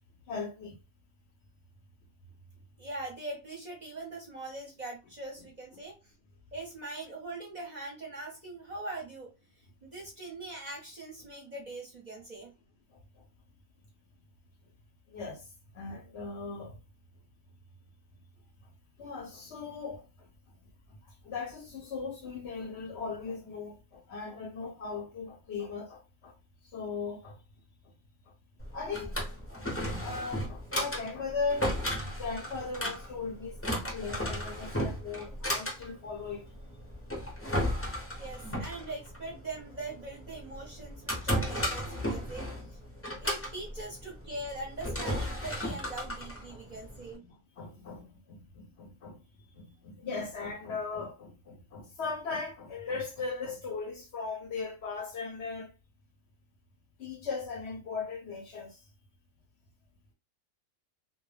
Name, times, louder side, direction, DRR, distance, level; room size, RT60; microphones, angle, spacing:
voice 1, 0.3-0.8 12.9-13.2 15.1-15.5 15.7-16.8 19.0-20.3 21.2-26.3 26.6-27.4 28.7-29.2 29.5-31.7 32.0-36.4 43.1-43.2 46.5-46.8 47.2-49.2 49.6-55.7 57.0-58.8, left 4 dB, 65° left, 0.7 m, -38 dB
voice 2, 2.8-6.1 6.5-9.3 9.8-12.5 38.2-42.8 43.2-47.2, right 2 dB, 45° right, 0.6 m, -42 dB
Drawer open or close, 28.6-47.1, equal, 20° left, 0.4 m, -35 dB
2.1 x 2.1 x 3.2 m
omnidirectional pair, 1.4 m